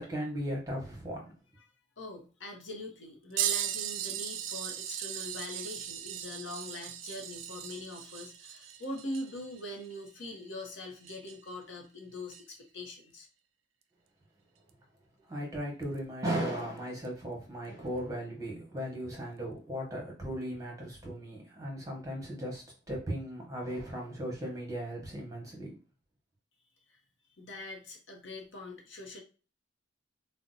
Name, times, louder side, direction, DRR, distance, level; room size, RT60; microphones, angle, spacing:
voice 1, 0.0-1.3 15.3-25.7, equal, 15° right, 1.0 m, -37 dB
voice 2, 2.0-13.3 26.9-27.0 27.4-29.2, left 1 dB, 65° left, 0.8 m, -42 dB
sound 1, 3.4-11.6 12.3-12.4 14.7-14.8 15.8-16.0 17.0-17.1, right 10 dB, 75° right, 0.4 m, -38 dB
2.6 x 2.1 x 3.9 m
head